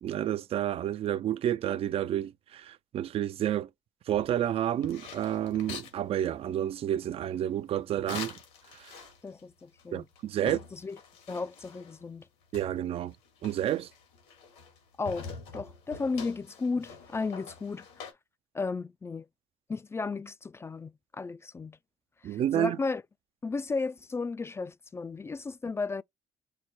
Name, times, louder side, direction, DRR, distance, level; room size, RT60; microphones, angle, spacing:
voice 1, 0.0-3.7 4.1-8.4 8.7-9.0 9.9-10.6 12.5-13.1 13.4-13.9 22.2-22.8, right 11 dB, 55° right, 0.4 m, -30 dB
sound 1, 4.1-6.0 8.1-9.4 9.8-9.9 10.2-12.0 12.5-14.8 15.1-18.1, left 5 dB, 85° left, 2.1 m, -45 dB
voice 2, 9.2-10.1 10.4-11.0 11.3-12.3 15.0-18.1 18.5-19.3 19.7-21.8 22.2-23.0 23.4-26.0, left 4 dB, 20° left, 0.3 m, -34 dB
5.7 x 2.1 x 4.5 m
supercardioid pair, 65°, 12 cm